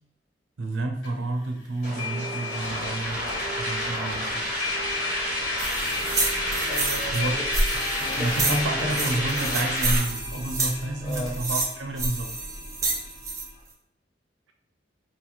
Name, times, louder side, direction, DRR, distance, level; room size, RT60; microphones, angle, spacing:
voice 1, 0.6-4.5 7.1-7.4 8.2-12.3, right 2 dB, 85° right, 3 dB, 0.6 m, -30 dB
sound 1, 1.0-1.1 2.0-13.6, left 4 dB, 70° left, 0.8 m, -37 dB
sound 2, 1.8-10.0, equal, 50° left, 1.5 m, -30 dB
sound 3, 5.6-13.4, right 2 dB, 15° right, 0.6 m, -29 dB
voice 2, 6.7-9.7 11.0-11.4, left 1 dB, 25° left, 0 dB, 0.4 m, -36 dB
4.4 x 3.0 x 2.4 m, 0.77 s
head